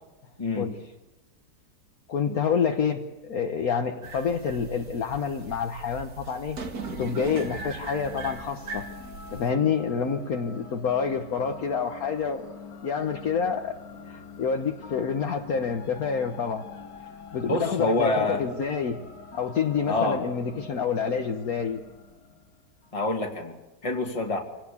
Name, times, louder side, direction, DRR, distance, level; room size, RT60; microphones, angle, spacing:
voice 1, 0.4-0.7 2.3-2.4 17.4-18.4 19.9-20.2 22.9-23.5 23.8-24.4, left 2 dB, 20° left, 1 dB, 2.3 m, -26 dB
voice 2, 2.1-6.6 6.9-8.8 9.3-12.5 12.8-13.8 14.1-16.6 17.3-19.0 19.3-21.8, left 6 dB, 60° left, 4 dB, 1.6 m, -28 dB
sound 1, 4.0-9.5, right 4 dB, 60° right, 2.3 m, -39 dB
sound 2, 6.8-23.0, left 5 dB, 75° left, 2.1 m, -45 dB
26.0 x 17.5 x 8.5 m, 1.1 s
omnidirectional pair, 1.9 m